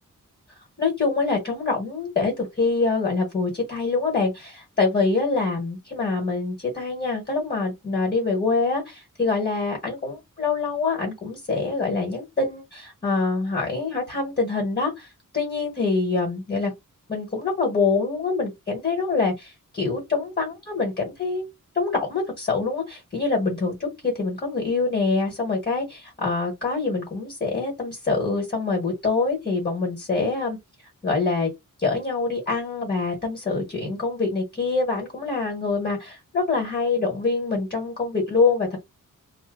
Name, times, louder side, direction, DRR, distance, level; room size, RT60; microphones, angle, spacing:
voice 1, 0.8-16.7 17.1-21.5 21.7-30.6 31.0-31.5 31.8-38.8, left 4 dB, 30° left, 1.3 m, -25 dB
2.7 x 2.2 x 3.7 m
wide cardioid pair, 150°, 32 cm